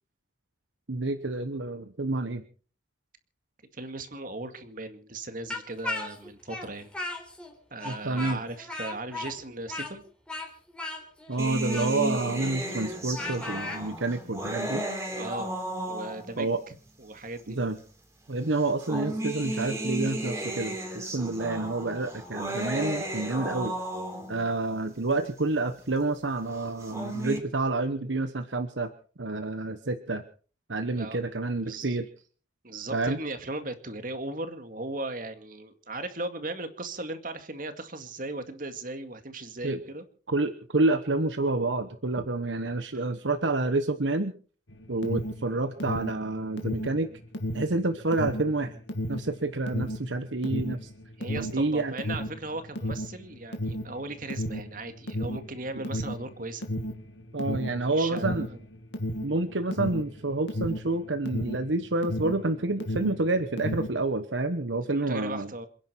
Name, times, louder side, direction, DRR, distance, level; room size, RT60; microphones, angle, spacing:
voice 1, 0.9-2.4 7.8-8.4 11.3-14.8 16.4-16.6 17.5-17.8 18.3-23.7 24.3-28.9 29.2-30.2 30.7-32.1 32.9-33.2 39.6-39.8 40.3-44.3 44.9-47.1 47.5-48.8 49.1-50.9 51.4-51.9 57.3-58.5 59.2-65.5, right 2 dB, 80° right, 9 dB, 1.1 m, -28 dB
voice 2, 3.7-6.9 7.7-10.0 15.2-15.5 15.9-16.5 17.0-17.6 31.0-31.2 31.6-32.0 32.6-40.0 51.2-56.7 57.8-58.6 64.9-65.7, right 2 dB, 45° right, 8 dB, 2.2 m, -37 dB
Speech, 5.5-7.5 7.8-13.8, left 2 dB, 5° left, 3.8 m, -37 dB
sound 1, 11.4-16.5 17.4-17.5 18.6-24.5 26.6-27.4, right 1 dB, 15° right, 3.5 m, -34 dB
Alarm, 44.7-62.5 62.7-64.0, equal, 80° left, 2.5 m, -33 dB
28.0 x 10.5 x 4.6 m, 0.42 s
head